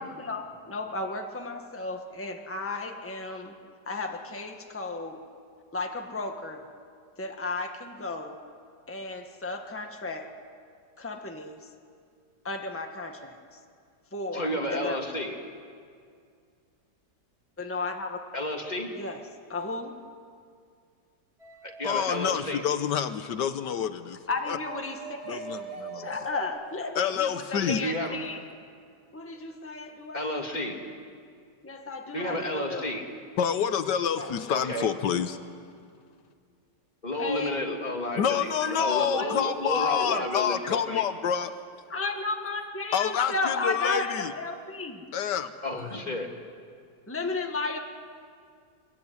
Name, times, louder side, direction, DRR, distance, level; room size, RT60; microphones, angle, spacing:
voice 1, 0.0-3.5 3.9-5.2 5.7-6.7 7.2-8.4 8.9-10.3 11.0-11.7 12.4-13.4 14.1-15.0 17.6-18.2 18.9-19.2 19.5-19.9 24.3-25.4 25.9-28.4 29.1-30.5 31.6-32.9 34.1-34.3 37.2-37.5 38.6-39.3 39.8-40.3 41.9-45.0 47.1-47.8, left 3 dB, 10° left, 3 dB, 1.6 m, -34 dB
voice 2, 14.3-15.4 18.3-18.9 21.6-22.6 27.5-28.2 30.1-30.8 32.1-33.0 34.5-34.9 37.0-41.0 45.6-46.3, left 1 dB, 25° left, 1 dB, 2.8 m, -31 dB
sound 1, 21.4-22.8 24.2-26.5, right 4 dB, 20° right, 3.1 m, -42 dB
voice 3, 21.8-24.2 24.5-24.6 25.3-26.1 26.9-27.9 33.4-35.4 38.1-41.5 42.9-44.3 45.1-45.5, left 8 dB, 85° left, 10 dB, 1.6 m, -28 dB
23.5 x 21.5 x 9.7 m, 2.2 s
omnidirectional pair, 1.8 m